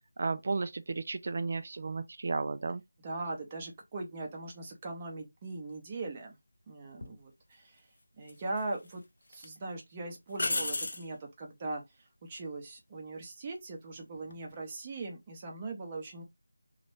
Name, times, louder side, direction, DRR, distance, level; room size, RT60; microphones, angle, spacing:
voice 1, 0.2-2.8, right 4 dB, 40° right, 0.3 m, -33 dB
voice 2, 3.0-6.4 6.7-7.8 8.2-9.0 9.3-11.8 12.2-16.2, right 2 dB, 20° right, 0.8 m, -40 dB
sound 1, 7.0-7.2 8.3-8.9 9.3-9.5 10.4-11.1 14.2-14.5, left 2 dB, 45° left, 0.4 m, -33 dB
3.0 x 2.5 x 3.1 m
figure-of-eight pair, 165°, 0 cm